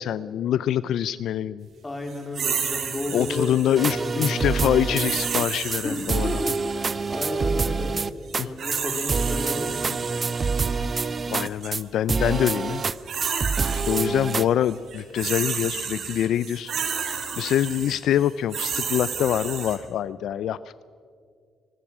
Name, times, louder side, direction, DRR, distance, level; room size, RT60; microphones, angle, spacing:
voice 1, 0.0-1.7 3.1-6.4 8.4-8.5 10.9-12.8 13.3-13.4 13.7-16.7 17.0-20.8, left 10 dB, 75° left, 16 dB, 0.4 m, -25 dB
voice 2, 1.8-3.5 4.0-4.5 5.6-8.0 8.4-10.0, left 1 dB, 20° left, 3 dB, 3.7 m, -33 dB
sound 1, 2.3-3.9 5.0-6.8 8.3-10.7 11.4-11.7 12.7-14.3 14.6-19.8, right 7 dB, 60° right, 3.0 m, -31 dB
sound 2, 3.7-5.5 5.7-5.8 6.1-8.4 8.7-8.8 9.1-11.8 12.1-12.9 13.2-14.5, right 4 dB, 35° right, 0.6 m, -26 dB
23.5 x 19.5 x 6.1 m, 2.2 s
cardioid pair, 90°, 0 cm